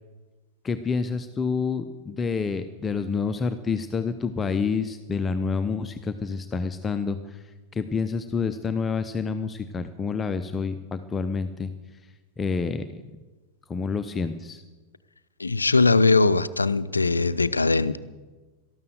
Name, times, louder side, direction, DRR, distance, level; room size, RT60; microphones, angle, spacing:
voice 1, 0.6-7.4 7.7-11.7 12.4-13.0 13.7-14.6, left 5 dB, 20° left, 10 dB, 0.7 m, -28 dB
voice 2, 15.4-18.0, left 3 dB, 80° left, 17 dB, 0.5 m, -20 dB
12.5 x 12.5 x 7.9 m, 1.3 s
figure-of-eight pair, 90°, 0 cm